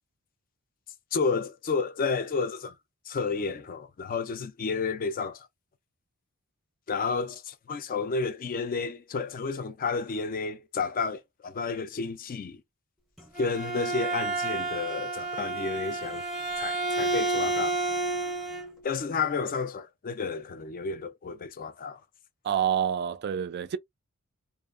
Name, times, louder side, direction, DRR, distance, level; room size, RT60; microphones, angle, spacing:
voice 1, 1.1-2.7 3.1-5.5 6.9-12.6 13.4-16.3 16.6-17.7 18.8-22.0, left 4 dB, 40° left, 0.4 m, -31 dB
Bowed string instrument, 13.2-18.7, right 3 dB, ahead, 0.6 m, -30 dB
voice 2, 22.4-23.8, right 9 dB, 45° right, 0.3 m, -27 dB
2.6 x 2.3 x 2.4 m
head